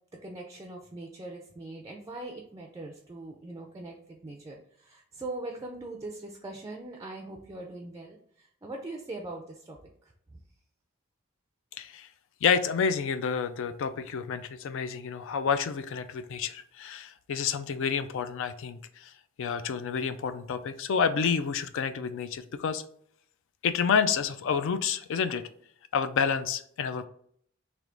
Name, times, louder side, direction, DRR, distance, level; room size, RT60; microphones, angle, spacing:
voice 1, 0.1-9.8 10.0-10.4, right 2 dB, 15° right, 1 dB, 0.4 m, -41 dB
voice 2, 11.8-12.1 12.4-19.1 19.4-22.8 23.6-25.4 25.9-27.1, left 6 dB, 65° left, 11 dB, 0.3 m, -29 dB
3.3 x 3.0 x 3.7 m, 0.65 s
head